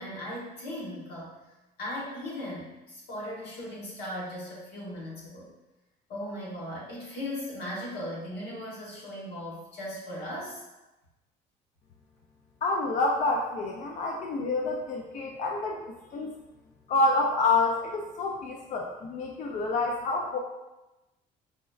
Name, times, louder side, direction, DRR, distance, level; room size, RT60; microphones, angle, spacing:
voice 1, 0.0-1.4 1.8-5.5 6.1-10.6, left 1 dB, 90° left, -5 dB, 1.2 m, -38 dB
voice 2, 12.6-15.8 16.1-16.3 16.9-20.4, left 3 dB, 50° left, 1 dB, 0.4 m, -28 dB
4.9 x 2.0 x 2.3 m, 1.0 s
cardioid pair, 110°, 17 cm